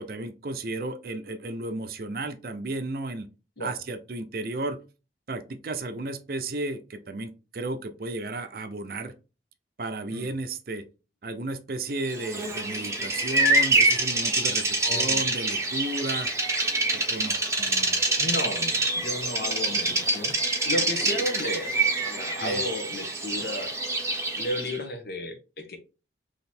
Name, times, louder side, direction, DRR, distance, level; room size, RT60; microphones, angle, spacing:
voice 1, 0.0-3.3 3.6-4.8 5.3-9.1 9.8-10.9 11.2-16.3 16.9-17.4 22.4-22.6, right 2 dB, 50° right, 9 dB, 0.5 m, -33 dB
Bird vocalization bird call bird song, 12.1-24.8, right 2 dB, 15° right, 0.8 m, -26 dB
voice 2, 14.8-15.2 17.6-21.7 22.0-23.7 24.4-25.8, left 1 dB, 55° left, 5 dB, 1.1 m, -33 dB
3.9 x 3.0 x 4.3 m, 0.32 s
head